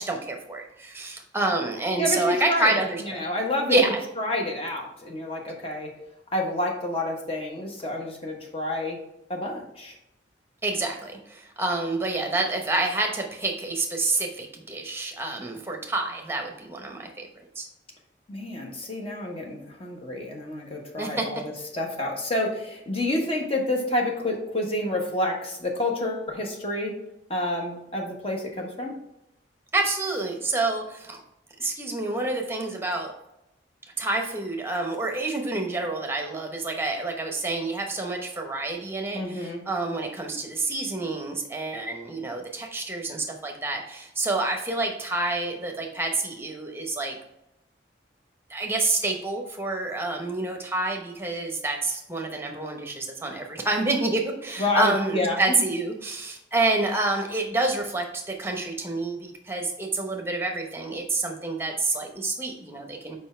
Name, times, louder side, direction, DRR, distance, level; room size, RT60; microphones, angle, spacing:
voice 1, 0.0-3.2 3.7-4.0 10.6-17.3 17.5-17.7 21.0-21.3 29.7-31.2 31.6-33.1 34.0-47.2 48.5-63.2, right 2 dB, 15° right, 2 dB, 0.9 m, -28 dB
voice 2, 2.0-2.7 3.0-3.9 4.2-5.9 6.3-9.0 9.3-10.0 18.3-26.9 27.3-28.9 39.1-39.6 54.6-55.6, left 1 dB, 30° left, 1 dB, 1.2 m, -29 dB
5.4 x 4.8 x 4.4 m, 0.85 s
head